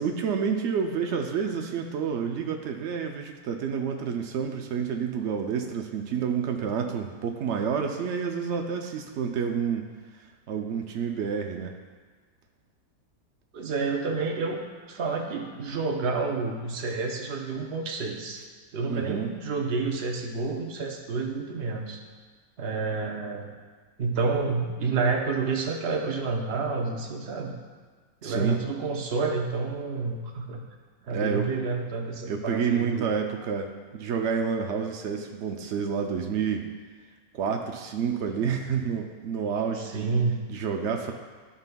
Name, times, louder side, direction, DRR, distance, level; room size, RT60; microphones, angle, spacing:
voice 1, 0.0-9.9 10.5-11.7 18.9-19.3 28.2-28.6 31.1-31.5 32.3-36.7 37.3-40.1 40.5-41.1, right 6 dB, 90° right, 4 dB, 0.6 m, -29 dB
voice 2, 13.5-14.6 14.9-18.4 18.7-22.0 22.6-23.5 24.0-27.5 28.2-30.6 31.1-33.2 39.7-40.4, right 4 dB, 50° right, 2 dB, 0.8 m, -29 dB
13.0 x 5.7 x 2.3 m, 1.4 s
omnidirectional pair, 1.8 m